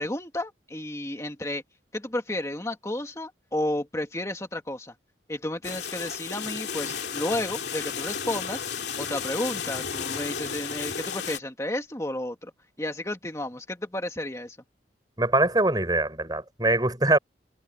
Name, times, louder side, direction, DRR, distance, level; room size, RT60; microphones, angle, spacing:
voice 1, 0.0-1.6 1.9-4.9 5.3-8.6 9.0-12.5 12.8-14.6, left 1 dB, 15° left, 2.0 m, -32 dB
sound 1, 5.6-11.4, left 6 dB, 70° left, 2.6 m, -33 dB
voice 2, 15.2-17.2, right 2 dB, 20° right, 5.7 m, -23 dB
head